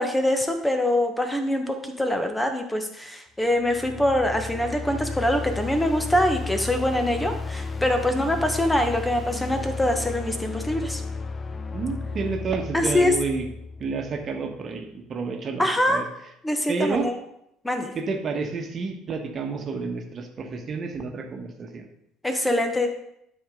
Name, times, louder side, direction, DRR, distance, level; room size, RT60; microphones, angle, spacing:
voice 1, 0.0-11.0 12.7-13.2 15.6-16.0 16.4-17.2 17.6-17.9 22.2-22.9, left 1 dB, 10° left, 6 dB, 1.2 m, -24 dB
sound 1, 3.5-14.6, left 4 dB, 25° left, 0.7 m, -34 dB
voice 2, 11.7-13.4 13.8-16.0 16.7-17.1 17.9-21.9, right 4 dB, 40° right, 4 dB, 1.4 m, -30 dB
12.0 x 5.1 x 3.8 m, 0.78 s
figure-of-eight pair, 55°, 0 cm